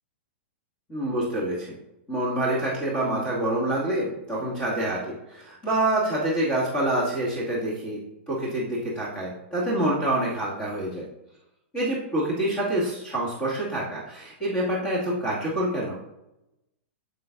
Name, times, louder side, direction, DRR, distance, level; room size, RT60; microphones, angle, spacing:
voice 1, 0.9-1.7 2.1-8.0 8.3-11.0 11.7-16.0, right 1 dB, 15° left, -7 dB, 2.3 m, -27 dB
7.5 x 7.5 x 2.6 m, 0.90 s
hypercardioid pair, 150°, 7 cm